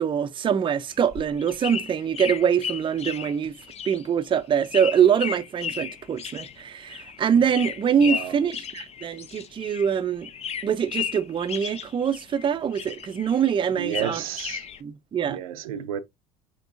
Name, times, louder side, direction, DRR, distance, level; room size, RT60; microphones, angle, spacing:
voice 1, 0.0-3.5 3.9-10.3 10.6-14.2 14.8-15.4, right 8 dB, 30° right, 0.5 m, -24 dB
sound 1, 0.9-10.0 10.2-12.5 12.7-14.8, left 8 dB, 35° left, 0.6 m, -35 dB
voice 2, 8.0-8.4 13.7-14.6 15.3-16.0, right 9 dB, 85° right, 0.6 m, -31 dB
6.0 x 3.0 x 2.5 m
hypercardioid pair, 80°, 18 cm